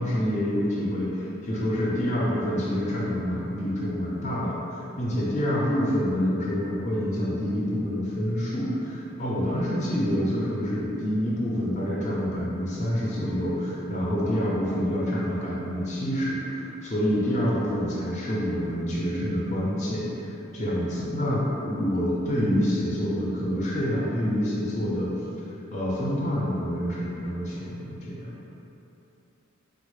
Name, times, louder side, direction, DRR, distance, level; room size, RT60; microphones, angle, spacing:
voice 1, 0.0-4.6 5.0-20.1 20.5-25.1 25.7-28.3, equal, 30° left, -6 dB, 0.5 m, -27 dB
4.1 x 2.0 x 3.1 m, 2.9 s
head